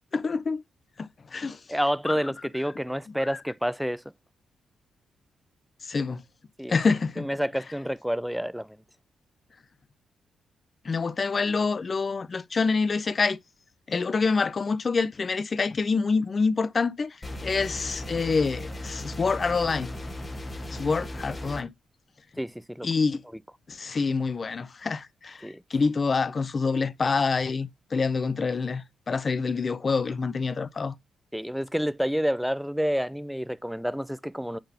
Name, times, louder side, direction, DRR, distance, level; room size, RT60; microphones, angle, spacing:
voice 1, 0.1-0.6 1.0-1.6 2.1-2.2 5.9-6.2 6.7-7.3 10.8-13.4 13.9-17.1 17.4-19.9 20.7-21.7 22.8-23.2 23.7-30.9, left 4 dB, 45° left, 0.6 m, -26 dB
voice 2, 1.7-4.0 6.6-6.8 7.2-8.8 22.4-22.9 25.4-25.6 31.3-34.6, equal, ahead, 0.4 m, -29 dB
sound 1, 17.2-21.6, left 1 dB, 25° left, 1.5 m, -37 dB
8.8 x 3.9 x 2.8 m
hypercardioid pair, 45°, 0 cm